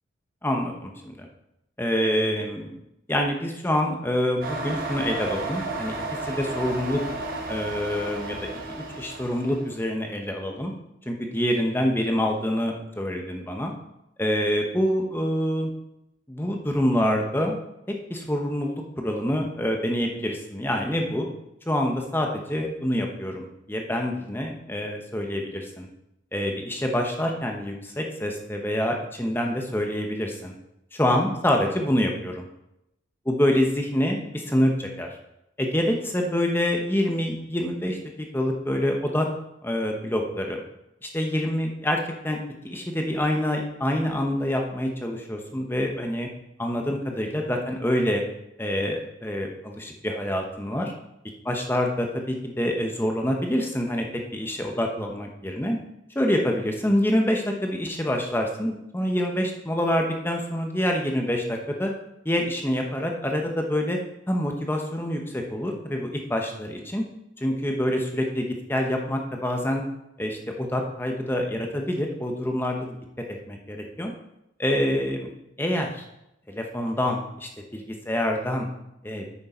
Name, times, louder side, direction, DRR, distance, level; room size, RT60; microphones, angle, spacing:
voice 1, 0.4-1.3 1.8-2.7 3.1-5.9 6.2-7.0 7.5-8.4 8.8-10.7 11.1-13.7 14.2-15.7 16.3-17.6 18.1-21.3 21.7-25.9 26.3-30.5 30.9-32.5 33.2-35.1 35.6-38.0 38.3-39.3 39.6-40.6 41.0-42.0 42.2-46.3 46.6-48.2 48.6-50.9 51.4-54.1 54.3-55.8 56.1-61.9 62.2-64.0 64.3-67.0 67.4-69.8 70.2-73.0 73.3-74.1 74.6-75.3 75.6-76.0 76.5-78.7 79.0-79.2, equal, 10° left, 2 dB, 1.0 m, -26 dB
sound 1, 4.4-9.7, right 2 dB, 50° right, 1.3 m, -33 dB
9.2 x 6.4 x 4.4 m, 0.84 s
head